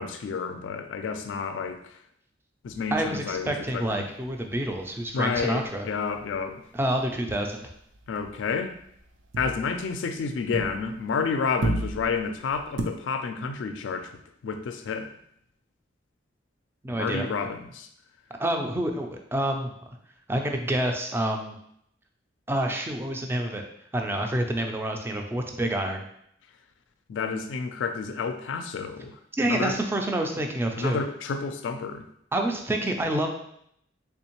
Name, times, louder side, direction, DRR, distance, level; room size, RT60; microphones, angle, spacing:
voice 1, 0.0-2.0 2.6-4.1 5.1-6.6 8.1-8.7 9.4-14.1 14.4-15.1 16.9-17.9 27.1-29.2 29.4-29.8 30.8-32.1, left 5 dB, 80° left, 8 dB, 0.3 m, -30 dB
sound 1, 2.7-6.4 6.7-7.0 7.3-11.2 11.4-12.8, right 2 dB, 85° right, 0.5 m, -35 dB
voice 2, 2.9-5.8 6.7-7.7 16.8-17.3 18.4-19.7 20.3-21.5 22.5-23.6 23.9-26.0 29.4-31.0 32.3-33.3, right 1 dB, 10° right, 3 dB, 0.3 m, -28 dB
3.4 x 3.1 x 3.0 m, 0.72 s
head